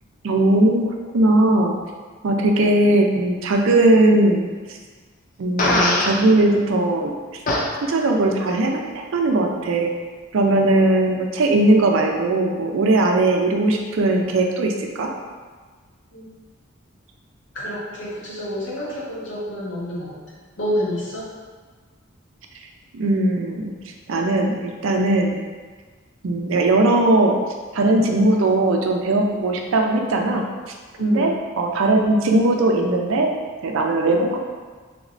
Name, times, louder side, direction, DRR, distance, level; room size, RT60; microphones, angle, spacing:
voice 1, 0.2-1.7 2.2-4.5 5.4-7.1 7.8-9.9 10.3-15.1 22.9-23.7 24.1-25.4 26.2-27.4 27.7-30.4 31.0-33.3 33.6-34.4, right 2 dB, 75° right, 2 dB, 0.4 m, -19 dB
Fart, 5.6-6.2 7.5-7.6, left 1 dB, 40° left, 0.4 m, -19 dB
voice 2, 17.5-20.2 20.6-21.3 31.0-31.4, equal, 65° left, -6 dB, 1.0 m, -28 dB
3.4 x 3.0 x 2.5 m, 1.5 s
head